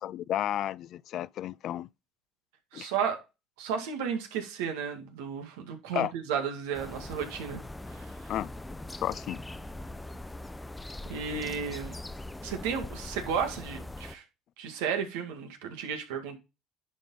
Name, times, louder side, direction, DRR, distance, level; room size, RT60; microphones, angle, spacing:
voice 1, 0.0-1.9 2.7-2.9 5.9-6.1 8.3-8.5 9.0-9.4, left 12 dB, 60° left, 0.4 m, -32 dB
voice 2, 2.7-3.2 3.6-7.6 7.9-8.1 11.1-11.9 12.4-14.2 14.6-16.4, right 7 dB, 90° right, 2.0 m, -33 dB
sound 1, 6.7-14.2, left 2 dB, 10° left, 0.7 m, -41 dB
10.5 x 5.3 x 4.0 m
supercardioid pair, 80°, 0 cm